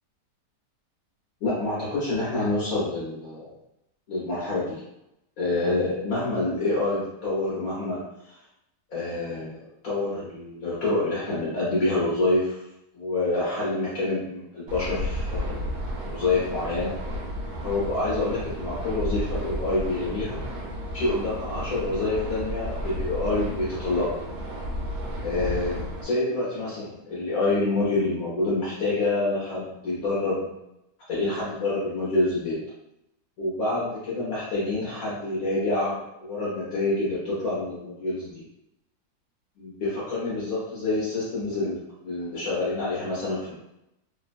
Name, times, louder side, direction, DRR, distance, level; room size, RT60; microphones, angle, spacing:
voice 1, 1.4-3.5 4.1-4.8 5.4-8.0 8.9-9.6 9.8-12.6 12.9-15.7 16.1-16.9 17.6-20.4 20.9-24.2 25.2-30.5 31.1-32.6 33.4-38.4 39.6-43.5, left 2 dB, 60° left, -9 dB, 1.2 m, -27 dB
sound 1, 14.7-26.0, equal, 75° right, 1.1 m, -32 dB
3.1 x 2.1 x 2.5 m, 0.86 s
omnidirectional pair, 1.8 m